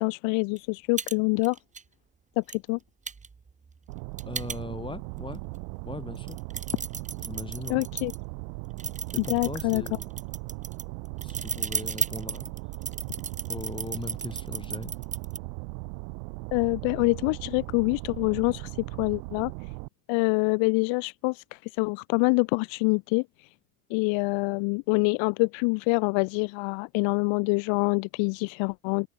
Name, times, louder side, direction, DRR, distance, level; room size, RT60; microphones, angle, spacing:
voice 1, 0.0-1.6 2.4-2.8 7.7-8.1 9.3-9.8 16.5-18.7 19.0-19.5 20.1-23.5 23.9-29.1, left 31 dB, 65° left, 1.0 m, -26 dB
sound 1, 0.6-0.7 1.0-1.1 1.4-1.8 2.5-2.6 3.1-5.0 5.6-5.7 6.2-8.2 8.8-15.4, right 5 dB, 15° right, 1.3 m, -34 dB
sound 2, 3.9-19.9, right 40 dB or more, 75° right, 4.2 m, -38 dB
voice 2, 4.3-5.4 5.8-6.4 7.2-7.8 9.1-10.1 11.2-12.4 13.5-14.9, left 3 dB, 10° left, 3.5 m, -39 dB
supercardioid pair, 115°, 50 cm